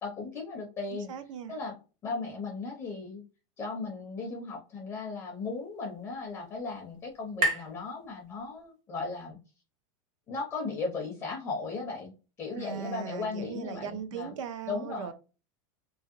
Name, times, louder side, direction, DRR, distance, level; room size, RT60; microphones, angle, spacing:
voice 1, 0.0-1.1 1.5-1.7 2.0-3.2 3.6-9.4 10.3-14.3 14.7-15.1, left 4 dB, 10° left, 0.5 m, -36 dB
voice 2, 0.9-1.5 12.6-15.1, right 8 dB, 80° right, 0.6 m, -38 dB
sound 1, 5.0-8.8, right 1 dB, 35° right, 0.7 m, -36 dB
2.7 x 2.7 x 2.4 m
supercardioid pair, 175°, 16 cm